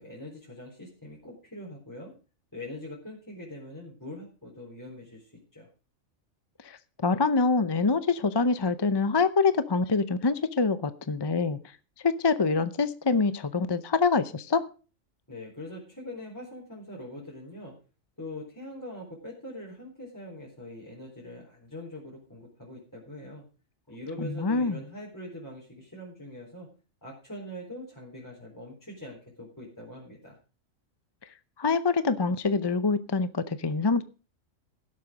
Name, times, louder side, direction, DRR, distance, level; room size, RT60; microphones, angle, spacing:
voice 1, 0.0-2.1 2.5-5.7 15.3-17.7 18.2-23.4 23.9-26.7 27.0-30.4, left 1 dB, 15° left, -4 dB, 4.3 m, -43 dB
voice 2, 6.6-11.6 12.0-14.7 24.2-24.8 31.6-34.0, left 4 dB, 30° left, 13 dB, 0.5 m, -25 dB
17.0 x 7.7 x 5.0 m, 0.35 s
omnidirectional pair, 1.3 m